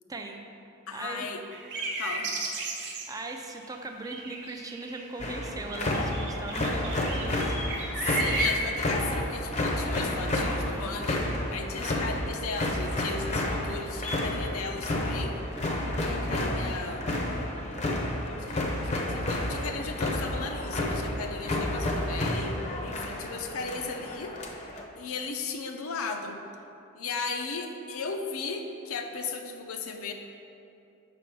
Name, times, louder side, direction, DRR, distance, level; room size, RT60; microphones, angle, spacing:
voice 1, 0.1-0.4 0.9-1.3 3.1-7.6, right 2 dB, 15° right, 3 dB, 0.4 m, -39 dB
voice 2, 0.9-1.4 2.0-2.3 8.0-15.4 16.0-17.1 18.4-24.4 25.0-26.4 27.0-30.1, left 4 dB, 70° left, 4 dB, 0.6 m, -36 dB
sound 1, 1.5-3.7 4.0-5.0 5.4-8.7, right 2 dB, 55° right, 0.8 m, -34 dB
sound 2, 5.2-24.8, left 1 dB, 30° left, 0.6 m, -30 dB
6.0 x 5.0 x 4.6 m, 2.7 s
head